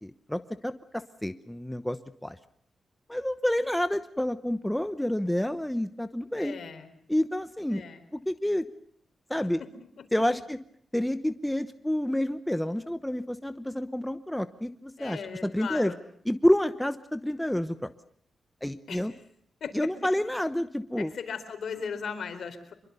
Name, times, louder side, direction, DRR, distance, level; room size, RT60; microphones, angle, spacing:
voice 1, 0.0-2.4 3.1-6.6 7.1-7.8 8.1-8.7 9.3-9.6 10.1-10.6 10.9-15.9 16.3-17.9 18.6-19.1 19.7-21.1, left 1 dB, 5° left, 10 dB, 0.9 m, -29 dB
voice 2, 6.4-6.9 7.7-8.0 9.6-10.1 15.0-16.0 18.9-19.1 19.6-19.9 21.0-22.7, left 6 dB, 70° left, 7 dB, 4.1 m, -38 dB
25.0 x 23.0 x 6.9 m, 0.66 s
wide cardioid pair, 115°, 0 cm